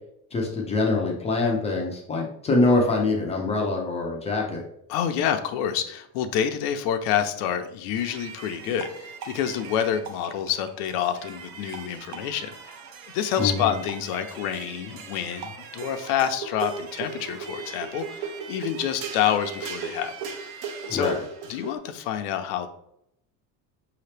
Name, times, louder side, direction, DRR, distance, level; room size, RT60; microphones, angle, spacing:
voice 1, 0.3-4.6 13.4-13.8 20.9-21.2, left 2 dB, 15° left, -1 dB, 0.4 m, -24 dB
voice 2, 4.9-12.6 13.1-20.3 20.8-21.2 21.5-22.7, left 9 dB, 70° left, 7 dB, 0.6 m, -28 dB
sound 1, 8.0-21.8, right 6 dB, 60° right, 0.7 m, -38 dB
5.6 x 2.9 x 3.3 m, 0.73 s
cardioid pair, 180°, 40 cm